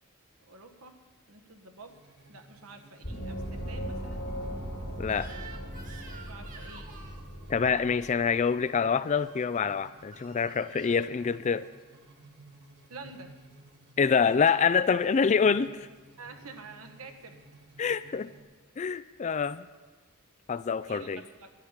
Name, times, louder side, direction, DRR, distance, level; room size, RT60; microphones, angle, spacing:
voice 1, 0.5-1.0 1.3-1.9 2.3-4.3 6.3-6.9 12.9-13.4 16.2-17.4 20.9-21.5, right 3 dB, 75° right, 6 dB, 1.4 m, -48 dB
sound 1, 1.7-18.4, right 2 dB, 50° right, 1.6 m, -55 dB
Gong, 3.0-8.3, equal, 80° left, 2.9 m, -38 dB
voice 2, 5.0-5.3 7.5-11.7 14.0-15.9 17.8-18.3 18.8-19.6 20.5-21.2, left 6 dB, 35° left, 15 dB, 0.3 m, -26 dB
Crying sobbing / Screech, 5.0-7.2 9.1-9.5 10.1-11.1, right 4 dB, 35° right, 1.6 m, -49 dB
12.0 x 7.4 x 9.9 m, 1.3 s
head